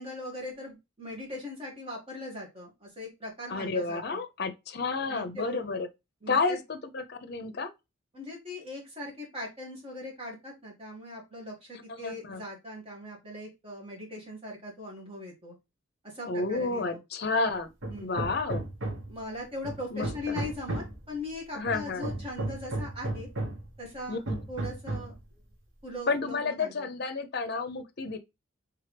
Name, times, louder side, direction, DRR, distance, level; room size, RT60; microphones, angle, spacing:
voice 1, 0.0-4.2 5.1-5.6 6.2-6.6 8.1-15.5 16.0-17.0 17.9-18.3 19.1-23.3 23.8-24.2 24.5-25.1 25.8-26.9, left 1 dB, 30° right, 2.0 m, -40 dB
voice 2, 3.5-5.9 6.3-7.7 11.9-12.4 16.3-17.7 18.0-18.6 19.9-20.4 21.5-22.0 24.1-24.4 26.1-28.2, left 4 dB, 55° left, 0.6 m, -31 dB
Hammer, 17.8-19.2 19.6-21.0 21.7-23.7 24.3-25.2, right 2 dB, 80° right, 1.5 m, -34 dB
4.5 x 3.5 x 3.3 m
head